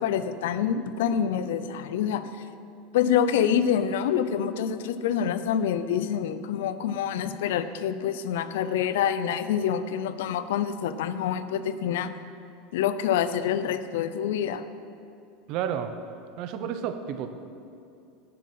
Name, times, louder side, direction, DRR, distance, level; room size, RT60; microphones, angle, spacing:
voice 1, 0.0-2.3 2.9-12.1 12.7-14.6, left 8 dB, 85° left, 13 dB, 0.5 m, -26 dB
voice 2, 15.5-15.9 16.4-17.3, right 9 dB, 50° right, 9 dB, 0.7 m, -31 dB
10.0 x 7.3 x 5.9 m, 2.6 s
supercardioid pair, 150°, 0 cm